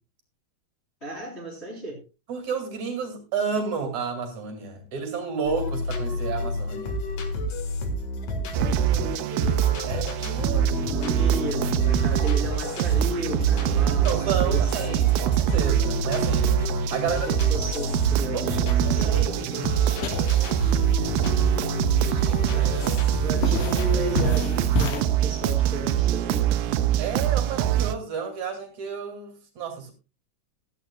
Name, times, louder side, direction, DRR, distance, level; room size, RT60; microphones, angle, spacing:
voice 1, 1.0-2.0 8.1-10.1 10.4-15.0 16.9-19.1 22.3-22.9 23.2-26.6, equal, 20° left, 3.7 m, -35 dB
voice 2, 2.3-7.0 9.9-10.8 14.0-16.6 16.9-17.3 18.3-18.6 19.0-21.5 22.0-22.5 27.0-29.9, right 6 dB, 60° right, 3.7 m, -31 dB
sound 1, 5.4-24.6, left 1 dB, 55° left, 2.6 m, -30 dB
sound 2, 8.5-28.0, right 12 dB, 90° right, 2.4 m, -24 dB
sound 3, 19.9-25.0, left 3 dB, 80° left, 3.3 m, -32 dB
15.5 x 12.5 x 2.3 m
omnidirectional pair, 3.8 m